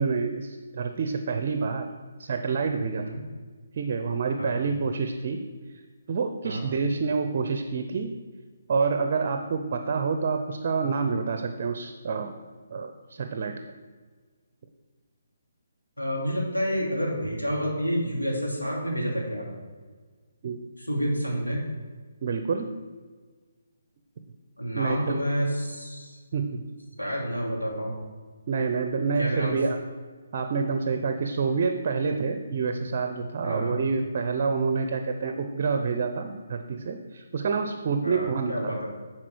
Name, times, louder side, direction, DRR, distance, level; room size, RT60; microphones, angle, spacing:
voice 1, 0.0-1.9 2.2-3.2 3.8-5.4 5.7-5.8 6.1-8.1 8.7-12.3 12.7-13.6 20.4-20.6 22.2-22.7 24.8-25.2 26.3-26.6 27.0-27.1 28.5-29.8 30.3-38.7, right 5 dB, 45° right, 7 dB, 0.6 m, -27 dB
voice 2, 16.0-19.5 20.8-21.6 24.6-26.2 27.0-28.0 29.2-29.6 33.4-33.8 38.0-38.8, equal, 90° left, -3 dB, 2.5 m, -29 dB
9.9 x 4.4 x 4.6 m, 1.5 s
figure-of-eight pair, 140°, 0 cm